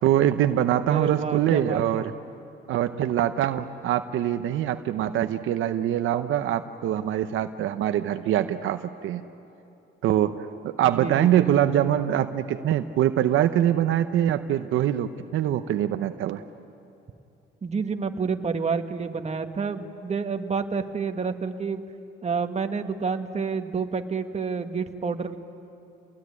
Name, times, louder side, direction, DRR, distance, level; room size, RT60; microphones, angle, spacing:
voice 1, 0.0-2.1 2.7-9.2 10.0-10.3 10.6-16.4, right 11 dB, 80° right, 9 dB, 0.9 m, -24 dB
voice 2, 0.9-2.0 10.8-11.9 17.6-21.8 22.2-25.4, right 5 dB, 35° right, 6 dB, 1.6 m, -29 dB
29.0 x 20.0 x 9.7 m, 2.7 s
cardioid pair, 90°, 20 cm